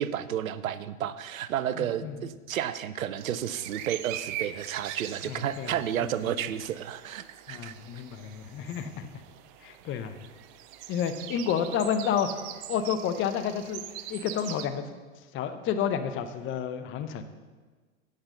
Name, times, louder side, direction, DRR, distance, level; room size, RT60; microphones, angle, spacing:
voice 1, 0.0-7.7, right 10 dB, 85° right, 14 dB, 0.6 m, -31 dB
voice 2, 1.8-2.2 5.2-5.7 6.2-6.4 7.5-9.1 9.6-10.1 10.9-12.3 12.7-13.8 14.1-15.0 15.3-17.2, left 8 dB, 30° left, 9 dB, 0.8 m, -30 dB
sound 1, 3.2-14.7, right 12 dB, 40° right, 0.6 m, -42 dB
8.3 x 5.9 x 6.7 m, 1.4 s
hypercardioid pair, 105°, 40 cm